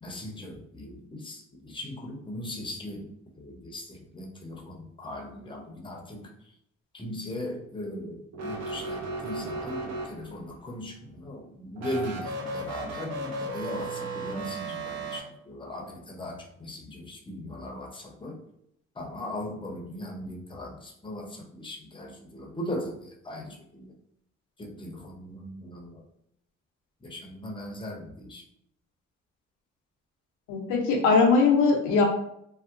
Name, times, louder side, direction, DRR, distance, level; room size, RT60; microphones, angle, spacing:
voice 1, 0.0-3.1 3.3-6.3 6.9-18.4 19.0-23.9 24.6-26.0 27.0-28.4, left 1 dB, 15° left, 1 dB, 0.7 m, -38 dB
sound 1, 8.3-10.5 11.8-15.2, right 2 dB, 55° right, 0.8 m, -35 dB
voice 2, 30.5-32.1, left 4 dB, 80° left, 1 dB, 0.6 m, -21 dB
2.6 x 2.1 x 2.5 m, 0.73 s
supercardioid pair, 60°, 31 cm